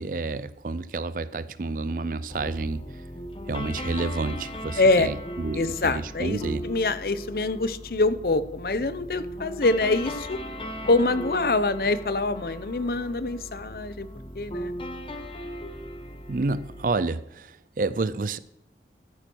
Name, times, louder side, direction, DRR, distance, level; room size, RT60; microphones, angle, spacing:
voice 1, 0.0-2.8 3.5-6.6 16.3-18.4, right 3 dB, 50° right, 0.5 m, -29 dB
sound 1, 2.3-16.9, equal, 30° left, 1.1 m, -38 dB
voice 2, 4.8-5.1 5.5-10.4 10.9-14.1 14.3-14.7, left 2 dB, 55° left, 0.7 m, -25 dB
14.5 x 8.9 x 4.6 m
head